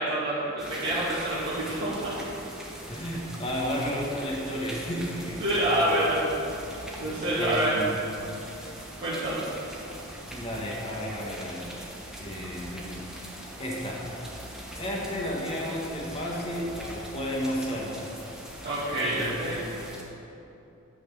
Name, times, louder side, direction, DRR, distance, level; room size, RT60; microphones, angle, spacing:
voice 1, 0.0-2.1 5.4-6.4 7.0-7.7 9.0-9.5 18.6-19.7, right 1 dB, 50° right, -11 dB, 1.8 m, -27 dB
sound 1, 0.6-20.0, equal, 5° right, 1.0 m, -42 dB
voice 2, 2.9-5.9 7.0-8.0 10.3-11.7 12.2-13.1 13.6-14.1 14.7-18.1 18.9-19.5, equal, 30° left, -3 dB, 1.3 m, -33 dB
8.9 x 4.2 x 6.9 m, 2.9 s
head